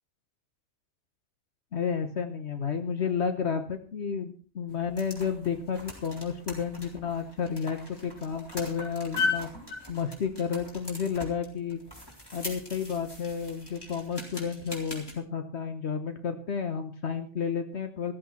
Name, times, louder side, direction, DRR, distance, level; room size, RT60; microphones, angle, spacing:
voice 1, 1.7-9.5 9.9-11.8 12.3-18.1, left 6 dB, 70° left, 7 dB, 1.4 m, -31 dB
sound 1, 4.7-15.1, left 3 dB, 20° left, 3.8 m, -38 dB
14.5 x 13.5 x 4.3 m, 0.39 s
omnidirectional pair, 1.2 m